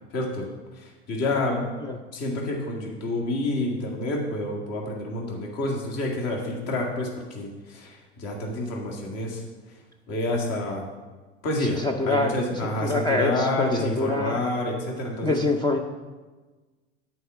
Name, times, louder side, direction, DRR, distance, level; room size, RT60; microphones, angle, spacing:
voice 1, 0.1-0.5 0.8-1.6 2.1-9.4 9.7-9.8 10.1-10.9 11.4-15.4, left 1 dB, 45° left, 0 dB, 1.9 m, -28 dB
voice 2, 11.6-12.4 12.6-14.4 15.2-15.8, left 2 dB, 15° left, 4 dB, 0.5 m, -25 dB
8.2 x 4.6 x 6.7 m, 1.3 s
hypercardioid pair, 105°, 35 cm